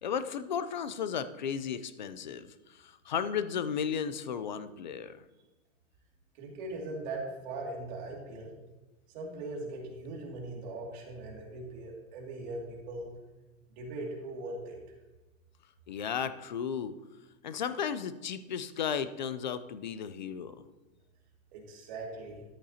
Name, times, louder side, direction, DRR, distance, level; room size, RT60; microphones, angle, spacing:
voice 1, 0.0-5.2 15.9-16.9 17.4-20.6, left 7 dB, 35° left, 13 dB, 0.4 m, -34 dB
voice 2, 6.3-8.5 9.1-13.1 13.7-14.8 21.5-22.4, right 2 dB, 30° right, -1 dB, 2.2 m, -40 dB
13.5 x 10.0 x 2.7 m, 1.1 s
hypercardioid pair, 170°, 41 cm